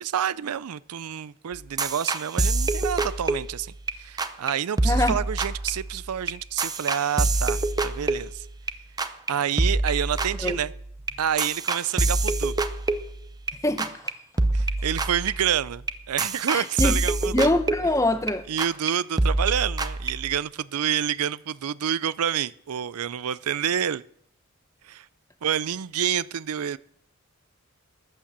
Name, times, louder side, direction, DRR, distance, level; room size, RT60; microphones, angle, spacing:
voice 1, 0.0-8.5 9.3-10.7 11.2-12.5 14.5-17.5 18.5-24.0 24.8-25.1 25.4-26.8, right 9 dB, 85° right, 0.5 m, -28 dB
sound 1, 1.5-3.9 4.2-4.5 4.8-8.7 9.0-9.3 9.6-13.5 13.8-14.1 14.4-18.3 18.6-18.9 19.2-20.4, right 2 dB, 15° right, 0.7 m, -26 dB
voice 2, 4.8-5.2 10.4-10.6 13.6-13.9 16.5-17.0 17.3-18.4, left 1 dB, 15° left, 0.9 m, -24 dB
14.5 x 10.0 x 7.4 m
head